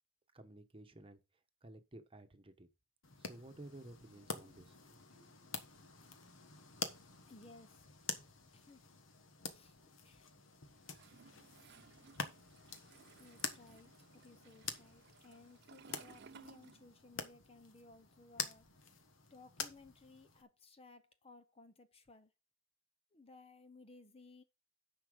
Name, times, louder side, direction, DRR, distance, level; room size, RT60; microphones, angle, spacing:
voice 1, 0.3-1.2 1.6-2.7 3.2-5.3, right 1 dB, 25° right, 1.1 m, -55 dB
sound 1, 3.0-20.4, left 6 dB, 70° left, 1.3 m, -48 dB
voice 2, 7.2-7.9 8.5-8.8 9.5-9.8 10.0-10.3 12.4-12.7 13.2-18.9 19.3-22.3 23.1-24.4, left 3 dB, 30° left, 0.7 m, -60 dB
Toilet flush, 10.9-17.3 17.6-19.2, right 5 dB, 55° right, 0.6 m, -61 dB
10.0 x 5.8 x 5.1 m
head